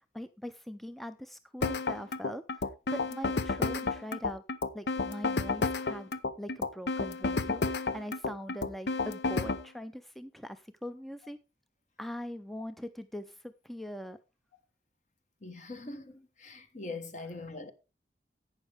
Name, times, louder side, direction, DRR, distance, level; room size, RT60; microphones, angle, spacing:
voice 1, 0.0-4.4 4.7-6.1 6.4-11.4 12.0-14.2, equal, ahead, 0.4 m, -42 dB
sound 1, 1.6-9.6, left 3 dB, 75° left, 0.7 m, -31 dB
voice 2, 15.4-17.7, left 3 dB, 45° left, 1.2 m, -42 dB
11.5 x 8.7 x 3.4 m
head